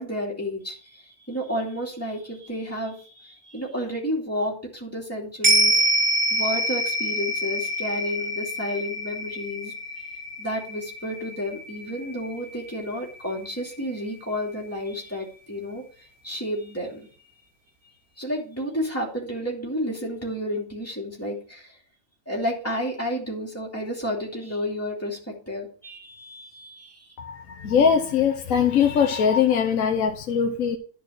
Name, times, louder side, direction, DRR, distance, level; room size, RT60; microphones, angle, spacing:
voice 1, 0.0-6.0 6.3-9.7 10.4-17.1 18.2-21.8 22.3-27.2, equal, 10° left, 2.6 m, -31 dB
sound 1, 5.4-14.0 14.4-14.5, right 1 dB, 65° right, 4.3 m, -26 dB
voice 2, 27.2-30.8, left 7 dB, 70° left, 1.3 m, -21 dB
11.0 x 4.6 x 6.3 m
omnidirectional pair, 1.5 m